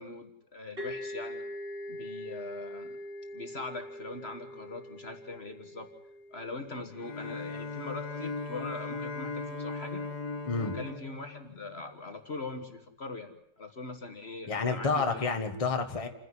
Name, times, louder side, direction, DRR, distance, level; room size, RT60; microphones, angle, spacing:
voice 1, 0.0-1.4 1.9-3.0 3.3-5.9 6.3-10.0 10.6-15.2, left 3 dB, 40° left, 6 dB, 1.7 m, -41 dB
sound 1, 0.8-8.3, left 1 dB, 35° right, 4.3 m, -43 dB
Bowed string instrument, 6.9-12.1, left 4 dB, 75° left, 2.0 m, -38 dB
voice 2, 14.5-16.1, left 4 dB, 20° left, 5 dB, 1.5 m, -29 dB
29.0 x 10.5 x 9.7 m, 0.78 s
omnidirectional pair, 1.7 m